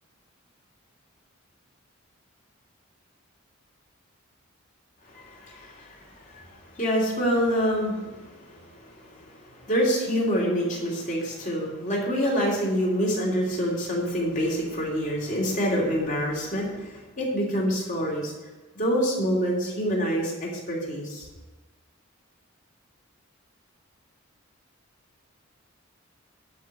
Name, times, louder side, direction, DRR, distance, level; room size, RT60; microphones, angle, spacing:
voice 1, 5.0-18.3 18.7-21.3, equal, 40° left, -2 dB, 3.2 m, -27 dB
11.0 x 5.2 x 8.1 m, 1.2 s
head